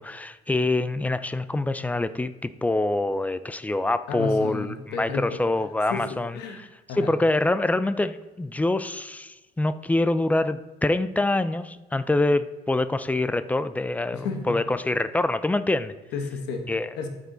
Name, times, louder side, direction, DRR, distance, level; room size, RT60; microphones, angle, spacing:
voice 1, 0.0-6.4 7.0-15.9 16.7-16.9, left 2 dB, 10° left, 13 dB, 0.4 m, -25 dB
voice 2, 4.1-5.4 5.9-6.6 6.9-7.1 14.1-14.6 16.1-16.7 17.0-17.1, left 4 dB, 90° left, 4 dB, 1.3 m, -32 dB
13.0 x 4.8 x 3.9 m, 1.2 s
cardioid pair, 110°, 17 cm